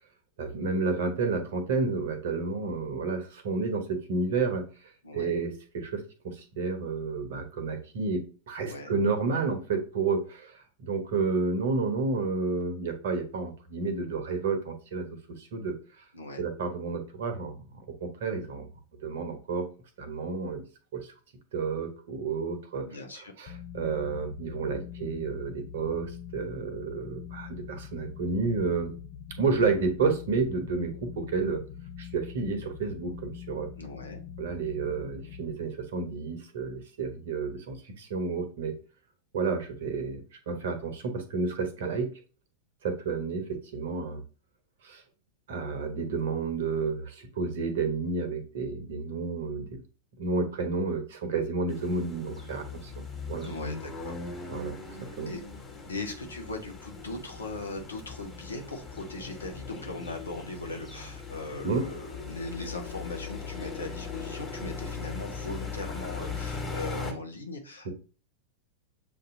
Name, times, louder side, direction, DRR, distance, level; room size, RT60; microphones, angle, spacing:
voice 1, 0.4-4.7 5.1-15.1 15.4-15.7 16.4-18.7 19.0-19.7 20.0-20.6 20.9-21.1 21.5-22.9 23.2-28.9 29.4-31.6 32.0-33.7 34.4-38.7 39.3-42.2 42.8-44.2 44.8-45.0 45.5-49.8 50.2-53.0 53.3-53.5 54.5-54.7 55.2-55.3 61.6-61.8 67.8-67.9, right 4 dB, 60° right, 6 dB, 1.0 m, -30 dB
voice 2, 22.8-23.3 33.8-34.2 53.4-54.1 55.3-55.4 55.9-67.9, left 2 dB, 75° left, 3 dB, 1.0 m, -39 dB
sound 1, 23.5-35.5, left 9 dB, 40° left, 0.5 m, -43 dB
sound 2, 51.7-67.1, left 4 dB, 15° left, 1.4 m, -39 dB
7.2 x 2.7 x 2.7 m, 0.37 s
figure-of-eight pair, 90°, 0 cm